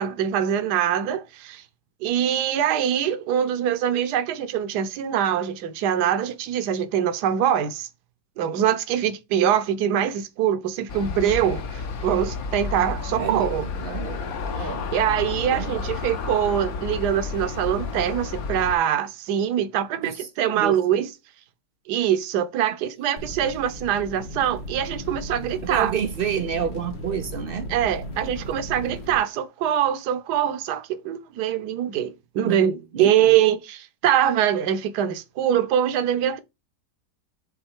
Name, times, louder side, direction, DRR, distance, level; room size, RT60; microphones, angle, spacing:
voice 1, 0.0-1.6 2.0-7.9 8.4-13.7 14.6-21.1 21.9-25.9 27.7-36.4, right 9 dB, 70° right, 1.4 m, -23 dB
Aircraft, 10.9-18.8, left 5 dB, 60° left, 1.4 m, -31 dB
voice 2, 13.2-14.2 14.6-14.9 15.5-15.9 20.0-20.3 20.6-20.8 25.6-27.7 32.4-32.6 32.9-33.3, right 7 dB, 85° right, 0.4 m, -29 dB
sound 1, 23.2-29.2, equal, 75° left, 2.8 m, -36 dB
7.8 x 3.9 x 4.6 m
omnidirectional pair, 1.9 m